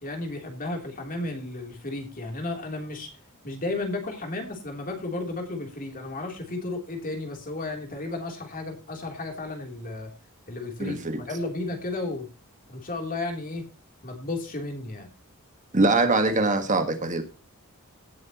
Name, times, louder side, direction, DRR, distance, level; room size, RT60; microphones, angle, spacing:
voice 1, 0.0-3.1 3.4-10.1 10.5-12.3 12.7-13.7 14.0-15.1, left 2 dB, 40° left, 3.2 m, -33 dB
voice 2, 10.8-11.2 15.7-17.2, right 3 dB, 35° right, 1.6 m, -23 dB
17.5 x 7.7 x 3.0 m
head